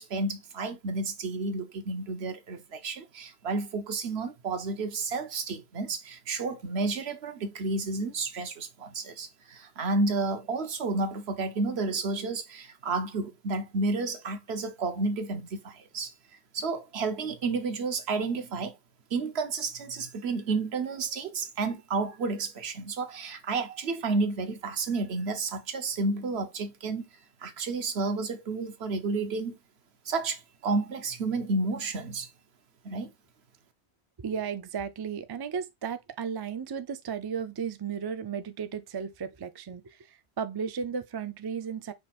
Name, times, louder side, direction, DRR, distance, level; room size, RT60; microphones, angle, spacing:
voice 1, 0.0-16.1 16.5-18.7 19.1-27.1 27.4-29.5 30.1-32.3 32.8-33.1, right 3 dB, 75° right, 1.1 m, -31 dB
voice 2, 34.2-41.9, right 7 dB, 40° right, 0.3 m, -34 dB
5.2 x 2.4 x 4.2 m
omnidirectional pair, 1.1 m